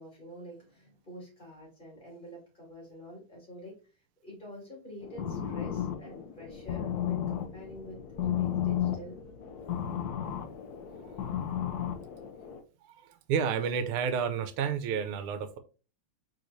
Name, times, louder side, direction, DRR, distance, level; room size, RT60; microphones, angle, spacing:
voice 1, 0.0-3.8 4.2-9.2 9.5-9.8, equal, 20° left, -3 dB, 2.7 m, -47 dB
sound 1, 5.0-12.6, left 10 dB, 65° left, 0.9 m, -34 dB
voice 2, 13.0-15.6, right 7 dB, 85° right, 10 dB, 1.5 m, -30 dB
4.8 x 4.3 x 2.5 m, 0.33 s
omnidirectional pair, 2.4 m